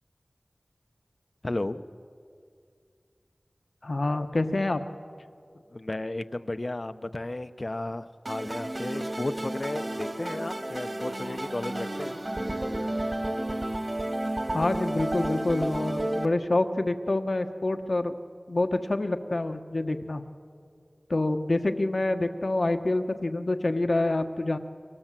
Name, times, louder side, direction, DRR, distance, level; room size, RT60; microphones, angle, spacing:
voice 1, 1.4-1.8 5.7-12.2, left 2 dB, 50° left, 11 dB, 0.9 m, -34 dB
voice 2, 3.8-4.8 14.5-18.2 18.5-20.2 21.1-24.6, left 2 dB, 65° left, 7 dB, 1.4 m, -27 dB
sound 1, 8.3-16.3, right 1 dB, 45° right, 2.4 m, -32 dB
30.0 x 24.5 x 7.6 m, 2.3 s
wide cardioid pair, 50°, 0 cm